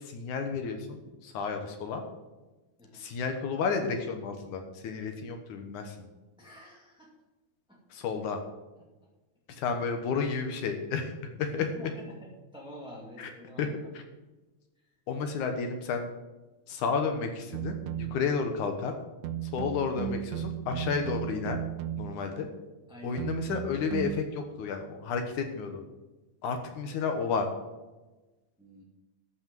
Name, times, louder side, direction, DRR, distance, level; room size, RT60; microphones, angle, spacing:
voice 1, 0.0-2.0 2.9-6.1 7.9-8.4 9.6-11.1 11.4-11.7 13.2-13.3 13.6-13.7 13.9-14.0 15.1-16.1 16.7-18.9 19.4-21.6 22.0-22.5 23.0-25.8 26.4-27.4, left 5 dB, 75° left, 5 dB, 2.6 m, -32 dB
voice 2, 6.4-7.1 7.7-7.8 11.6-13.9 15.3-15.6 22.9-23.2 28.6-28.8, equal, ahead, -3 dB, 1.6 m, -47 dB
sound 1, 17.5-18.3 19.2-22.3 23.2-24.2, right 10 dB, 75° right, 1.7 m, -35 dB
13.5 x 6.4 x 7.5 m, 1.1 s
omnidirectional pair, 3.6 m